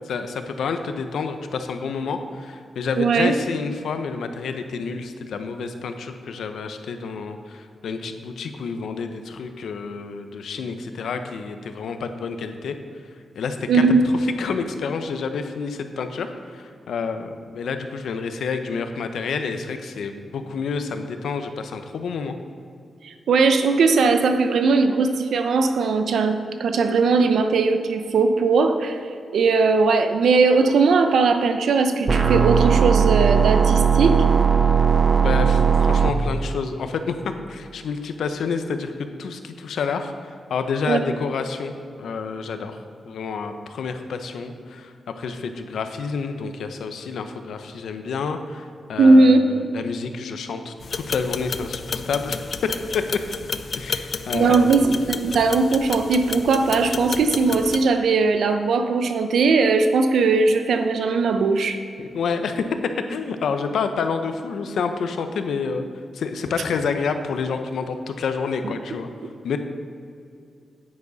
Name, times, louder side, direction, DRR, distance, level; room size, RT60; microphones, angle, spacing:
voice 1, 0.0-12.8 13.3-13.8 14.2-22.3 35.2-42.8 43.0-52.4 53.7-54.7 62.0-62.6 63.1-65.9 66.1-69.1 69.4-69.6, left 5 dB, 85° left, 7 dB, 0.8 m, -29 dB
voice 2, 3.0-3.4 13.7-14.0 23.0-29.0 29.3-34.2 40.9-41.0 49.0-49.4 54.3-61.8, right 4 dB, 85° right, 7 dB, 0.8 m, -19 dB
sound 1, 32.1-36.1, right 7 dB, 40° right, 0.6 m, -17 dB
sound 2, 50.8-57.8, left 5 dB, 55° left, 0.5 m, -31 dB
9.8 x 9.6 x 4.1 m, 2.4 s
cardioid pair, 95°, 0 cm